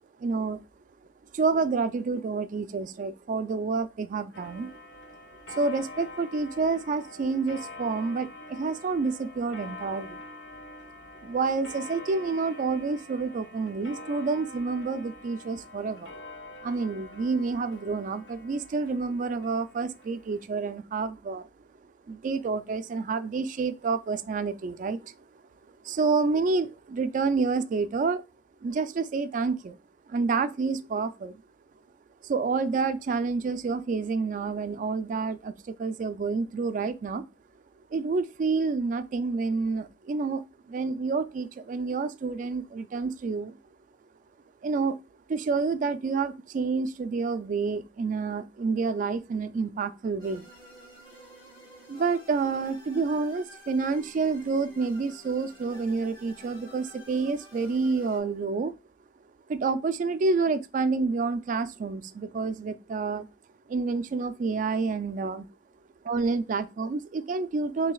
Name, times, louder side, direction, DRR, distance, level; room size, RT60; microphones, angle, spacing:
voice 1, 0.2-0.6 1.3-4.7 5.5-10.2 11.2-16.1 16.6-21.5 22.1-25.1 25.8-28.2 28.6-29.8 30.1-31.4 32.2-37.2 37.9-43.6 44.6-45.0 45.3-50.5 51.9-58.7 59.5-63.3 63.7-65.5 66.0-67.9, right 4 dB, 45° right, 0.3 m, -28 dB
Clock, 4.3-20.5, left 2 dB, 85° left, 0.8 m, -45 dB
sound 1, 50.2-58.2, left 1 dB, 25° left, 2.0 m, -51 dB
6.2 x 2.7 x 2.3 m
head